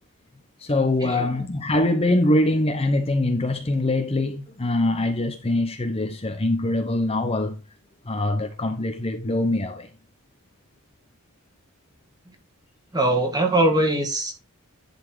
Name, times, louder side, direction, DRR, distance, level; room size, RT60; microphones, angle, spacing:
voice 1, 0.6-7.6 8.1-9.9, left 1 dB, 25° left, 0.8 m, -23 dB
voice 2, 12.9-14.4, right 1 dB, 20° right, 2.1 m, -21 dB
11.0 x 4.3 x 4.7 m
head